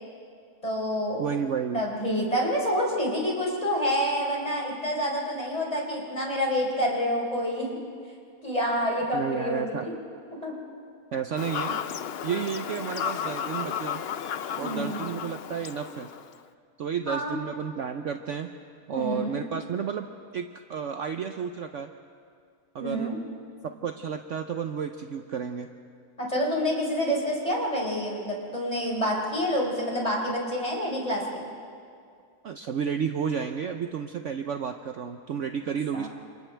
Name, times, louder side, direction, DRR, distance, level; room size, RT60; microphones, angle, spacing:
voice 1, 0.6-1.2 1.7-7.8 8.4-9.9 10.4-10.5 14.6-15.2 17.1-17.4 18.9-19.4 22.8-23.1 26.2-31.5 35.9-36.1, equal, 20° left, -2 dB, 4.4 m, -28 dB
voice 2, 1.2-1.8 9.1-9.9 11.1-11.8 12.2-14.0 14.6-16.1 16.8-18.5 18.9-20.1 20.3-21.9 22.7-23.1 23.6-25.7 32.4-36.1, right 7 dB, 60° right, 6 dB, 0.9 m, -31 dB
Fowl / Bird vocalization bird call bird song, 11.4-16.4, left 8 dB, 65° left, 0.6 m, -33 dB
30.0 x 27.5 x 3.4 m, 2.3 s
omnidirectional pair, 1.7 m